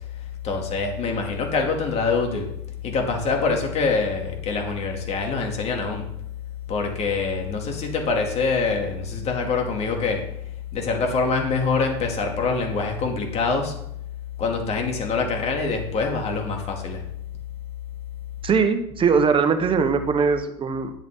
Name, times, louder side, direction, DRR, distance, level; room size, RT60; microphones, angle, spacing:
voice 1, 0.4-2.5 2.8-6.1 6.7-10.3 10.7-13.8 14.4-17.0, left 4 dB, 45° left, 3 dB, 2.5 m, -25 dB
voice 2, 18.4-20.9, right 5 dB, 35° right, 9 dB, 1.3 m, -21 dB
10.5 x 8.0 x 3.8 m, 0.76 s
hypercardioid pair, 85°, 15 cm